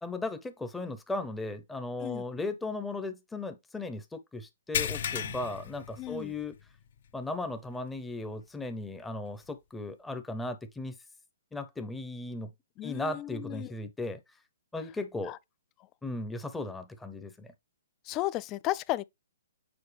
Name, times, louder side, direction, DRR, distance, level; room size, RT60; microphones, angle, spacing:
voice 1, 0.0-6.6 7.1-10.9 11.5-12.5 12.8-14.2 14.7-15.4 16.0-17.5, left 2 dB, 5° left, 0.7 m, -36 dB
sound 1, 4.7-6.6 7.0-7.2 7.7-7.8 9.4-9.5, left 8 dB, 60° left, 0.7 m, -34 dB
voice 2, 6.0-6.3 12.8-13.7 15.3-15.4 18.1-19.0, left 16 dB, 25° left, 0.3 m, -34 dB
6.9 x 4.3 x 3.3 m
hypercardioid pair, 140°, 0 cm